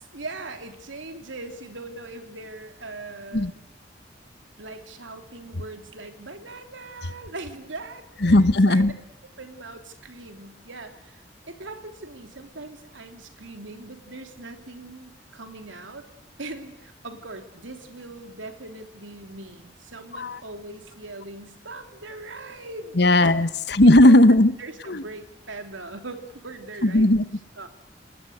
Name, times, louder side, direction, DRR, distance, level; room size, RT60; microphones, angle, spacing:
voice 1, 0.0-3.5 4.6-8.8 9.4-11.2 11.5-16.1 16.4-23.3 23.8-24.2 24.6-27.1 27.5-27.7, right 2 dB, 85° right, 6 dB, 3.2 m, -40 dB
voice 2, 8.2-8.9 20.2-20.4 23.0-24.5 24.9-25.0 26.8-27.2, left 1 dB, 60° left, 13 dB, 1.2 m, -16 dB
28.5 x 20.0 x 8.0 m, 0.85 s
head